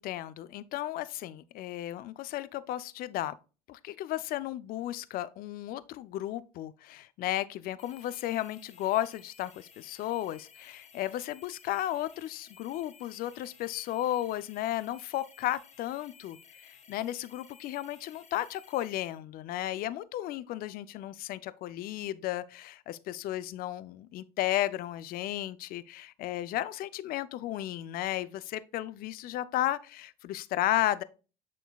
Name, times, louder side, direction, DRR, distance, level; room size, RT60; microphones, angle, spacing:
voice 1, 0.0-3.4 3.7-31.0, left 14 dB, 50° left, 0.5 m, -34 dB
sound 1, 7.8-19.2, left 6 dB, 35° left, 1.0 m, -56 dB
6.9 x 6.0 x 2.3 m
supercardioid pair, 90°, 19 cm